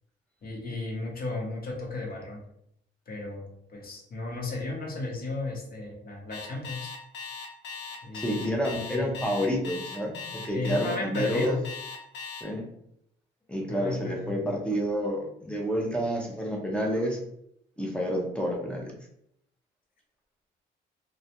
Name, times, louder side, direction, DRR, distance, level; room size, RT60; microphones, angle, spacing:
voice 1, 0.4-2.4 3.1-6.9 8.0-9.1 10.5-11.6 13.7-14.5, left 2 dB, 50° left, -1 dB, 0.8 m, -34 dB
Alarm, 6.3-12.4, left 5 dB, 70° left, 0.5 m, -39 dB
voice 2, 8.1-11.6 12.4-12.6 13.5-17.2 17.8-18.9, equal, 5° left, 0 dB, 0.6 m, -29 dB
2.3 x 2.1 x 2.8 m, 0.73 s
cardioid pair, 90°, 20 cm